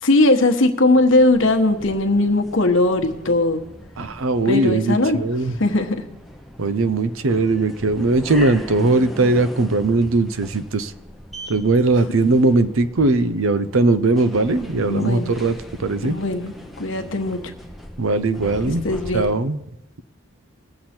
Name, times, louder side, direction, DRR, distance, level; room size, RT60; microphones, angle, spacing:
voice 1, 0.0-3.6 4.4-5.2 5.6-6.0 14.8-15.3 16.0-17.4 18.7-19.3, left 2 dB, 60° left, 5 dB, 1.2 m, -19 dB
sound 1, 0.9-19.3, equal, ahead, 0.7 m, -39 dB
voice 2, 4.0-5.5 6.6-10.9 11.5-16.2 18.0-18.8 19.1-19.6, right 2 dB, 70° right, 13 dB, 0.6 m, -19 dB
20.5 x 7.8 x 4.4 m, 0.90 s
head